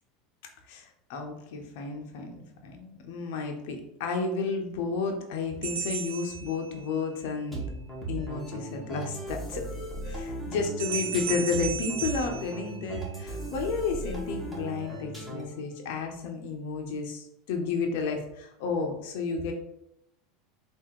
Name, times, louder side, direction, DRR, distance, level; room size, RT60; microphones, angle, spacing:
voice 1, 0.7-7.6 8.1-9.6 10.1-19.5, left 4 dB, 70° left, 2 dB, 0.9 m, -32 dB
sound 1, 5.6-7.2 10.8-13.3, right 7 dB, 85° right, 0.7 m, -35 dB
sound 2, 7.5-15.7, right 1 dB, ahead, 1.7 m, -37 dB
3.7 x 2.8 x 4.7 m, 0.80 s
supercardioid pair, 105°, 0 cm